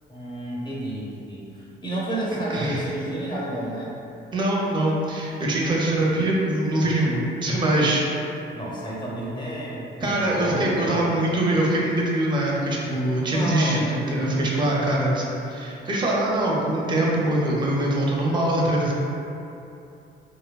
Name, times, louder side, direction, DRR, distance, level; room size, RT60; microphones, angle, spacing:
voice 1, 0.1-3.9 8.5-10.0 10.2-11.3 13.3-14.5, right 1 dB, 25° left, -6 dB, 0.7 m, -31 dB
voice 2, 2.5-2.8 4.3-8.0 10.0-18.9, right 1 dB, 25° right, -4 dB, 0.5 m, -23 dB
2.9 x 2.1 x 2.2 m, 2.8 s
cardioid pair, 90°, 20 cm